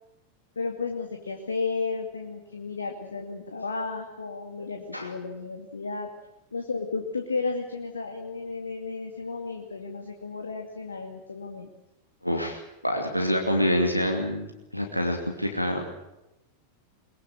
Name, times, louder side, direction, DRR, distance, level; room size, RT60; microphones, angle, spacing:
voice 1, 0.6-6.1 6.5-11.7, left 4 dB, 75° left, 3 dB, 2.4 m, -33 dB
voice 2, 12.2-15.9, equal, 90° left, 2 dB, 2.6 m, -27 dB
22.5 x 22.0 x 7.7 m, 0.93 s
figure-of-eight pair, 90°, 0 cm